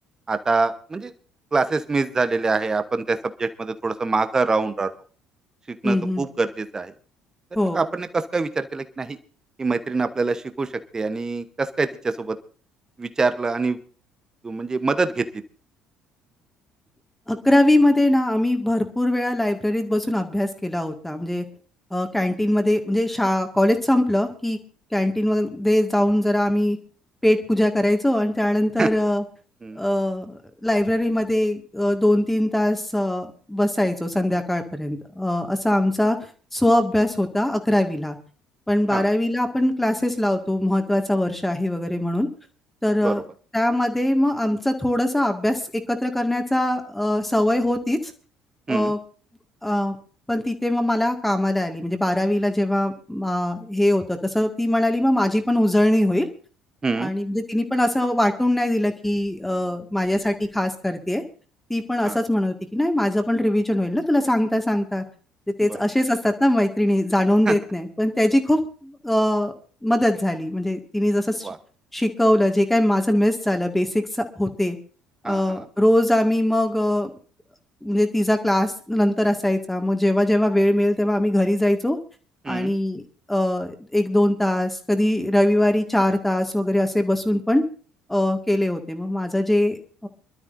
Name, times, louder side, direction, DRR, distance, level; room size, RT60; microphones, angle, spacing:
voice 1, 0.3-1.1 1.5-4.9 5.7-6.9 7.6-9.2 9.6-12.4 13.0-13.8 14.4-15.3 28.8-28.9 29.6-29.8 38.9-39.1 43.0-43.1 48.7-48.9 56.8-57.1 62.0-62.2 65.7-65.8 67.5-67.6 71.4-71.6 75.2-75.7 82.4-82.7, right 3 dB, 25° right, 11 dB, 1.0 m, -25 dB
voice 2, 5.8-6.2 7.6-7.8 17.3-21.5 21.9-24.6 24.9-26.8 27.2-29.2 29.8-36.2 36.5-38.2 38.7-42.3 42.8-43.2 43.5-45.6 45.9-48.0 48.7-49.0 49.6-50.0 50.3-56.3 57.0-61.2 61.7-65.0 65.6-69.5 69.8-71.5 71.9-74.0 74.4-74.8 75.2-77.1 77.8-82.0 82.5-83.0 83.3-87.6 88.1-90.1, left 1 dB, 5° left, 6 dB, 1.9 m, -21 dB
25.5 x 12.5 x 2.6 m, 0.39 s
figure-of-eight pair, 55°, 2 cm